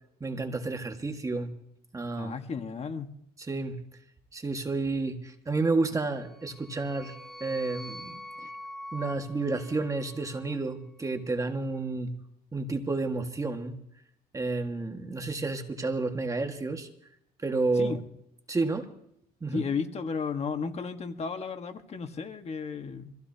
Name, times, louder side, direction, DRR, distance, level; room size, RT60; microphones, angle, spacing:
voice 1, 0.2-1.5 1.9-2.4 3.4-3.8 4.3-8.5 8.9-12.1 12.5-13.8 14.3-16.9 17.4-18.0 18.5-18.9 19.4-19.6, right 3 dB, 20° right, 5 dB, 1.7 m, -31 dB
voice 2, 2.2-3.1 17.7-18.0 19.5-23.1, left 5 dB, 40° left, 6 dB, 1.5 m, -34 dB
sound 1, 6.2-10.5, left 1 dB, ahead, 2.3 m, -44 dB
25.0 x 15.5 x 2.9 m, 0.73 s
cardioid pair, 110°, 17 cm